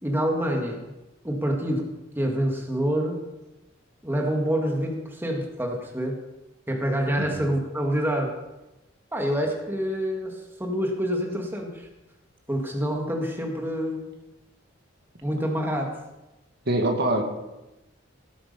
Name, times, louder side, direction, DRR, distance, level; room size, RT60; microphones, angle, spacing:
voice 1, 0.0-0.9 1.2-1.9 2.2-3.2 4.0-6.2 6.7-8.3 9.1-11.9 12.5-14.1 15.2-15.9, equal, 10° right, 1 dB, 1.9 m, -27 dB
voice 2, 16.7-17.2, right 1 dB, 55° right, 3 dB, 2.1 m, -24 dB
17.5 x 8.6 x 5.5 m, 0.99 s
head